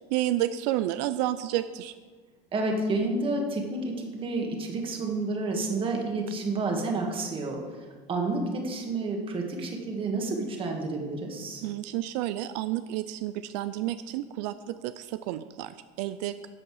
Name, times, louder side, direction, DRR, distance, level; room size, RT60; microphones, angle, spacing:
voice 1, 0.0-1.9 11.6-16.5, right 13 dB, 80° right, 12 dB, 0.5 m, -30 dB
voice 2, 2.5-7.6 8.1-11.6, right 2 dB, 25° right, 2 dB, 1.7 m, -30 dB
13.0 x 7.9 x 4.9 m, 1.4 s
cardioid pair, 160°, 21 cm